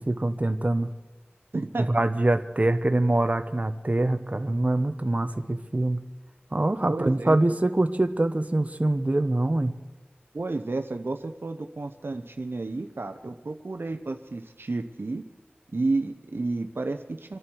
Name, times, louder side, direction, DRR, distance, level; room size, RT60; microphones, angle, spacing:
voice 1, 0.1-0.9 1.9-6.0 6.5-9.7, right 2 dB, 40° right, 8 dB, 1.1 m, -24 dB
voice 2, 1.5-1.9 6.9-7.4 10.3-15.2 15.7-17.4, right 3 dB, 70° right, 6 dB, 0.9 m, -31 dB
26.5 x 11.0 x 4.7 m, 1.2 s
wide cardioid pair, 50°, 4 cm